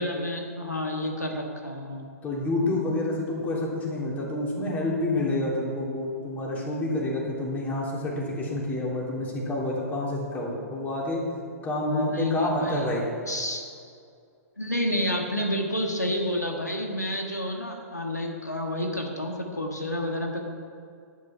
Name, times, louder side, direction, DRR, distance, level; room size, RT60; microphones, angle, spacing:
voice 1, 0.0-2.1 11.8-12.8 13.3-13.6 14.6-20.5, left 1 dB, 90° left, 2 dB, 1.6 m, -29 dB
voice 2, 2.2-11.2 11.6-13.0, left 1 dB, 20° left, -3 dB, 3.2 m, -28 dB
11.0 x 11.0 x 5.7 m, 2.3 s
figure-of-eight pair, 110°, 9 cm